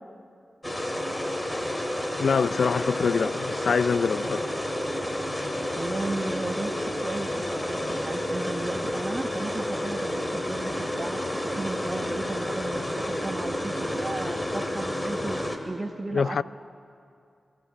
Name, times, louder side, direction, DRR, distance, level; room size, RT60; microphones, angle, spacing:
sound 1, 0.6-15.6, left 1 dB, 20° left, 2.3 m, -30 dB
voice 1, 2.2-4.5 16.1-16.4, left 5 dB, 75° left, 0.4 m, -25 dB
voice 2, 5.8-16.4, right 2 dB, 35° right, 1.3 m, -35 dB
22.5 x 15.0 x 8.4 m
cardioid pair, 50°, 0 cm